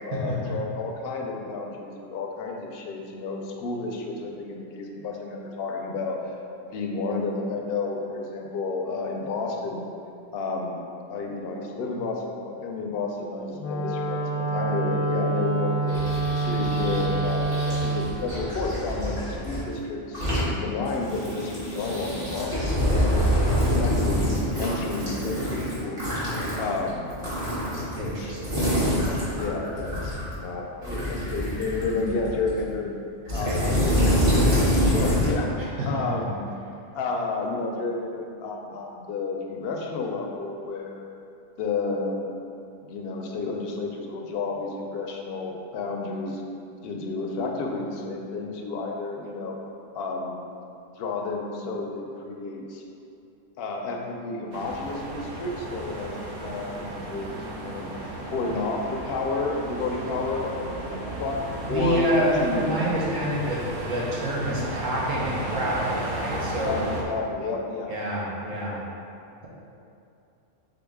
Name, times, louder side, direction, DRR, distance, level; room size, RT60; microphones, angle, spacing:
voice 1, 0.0-6.3 6.7-9.9 10.3-10.8 11.1-16.0 16.4-23.2 23.6-26.0 26.6-27.1 27.9-29.0 29.3-33.0 33.3-34.0 34.2-34.3 34.7-35.5 35.9-36.5 36.9-41.0 41.6-42.3 42.9-46.4 46.8-49.6 49.9-50.4 51.0-52.8 53.6-56.2 56.4-57.9 58.3-61.4 61.7-62.0 62.3-62.8 66.6-68.0, left 3 dB, 65° left, 1 dB, 0.7 m, -31 dB
Wind instrument woodwind instrument, 13.6-18.1, right 3 dB, 85° left, 1.0 m, -26 dB
sound 1, 15.9-19.6 20.0-20.4 20.8-30.3 30.8-32.7 33.2-35.3, equal, 50° right, 1.7 m, -26 dB
voice 2, 27.9-28.6 33.3-34.1 35.8-36.1 61.6-66.8 67.9-68.8, equal, 90° right, -5 dB, 1.3 m, -27 dB
sound 2, 54.5-67.0, right 2 dB, 65° right, 0.8 m, -34 dB
3.8 x 3.7 x 3.5 m, 2.6 s
omnidirectional pair, 1.3 m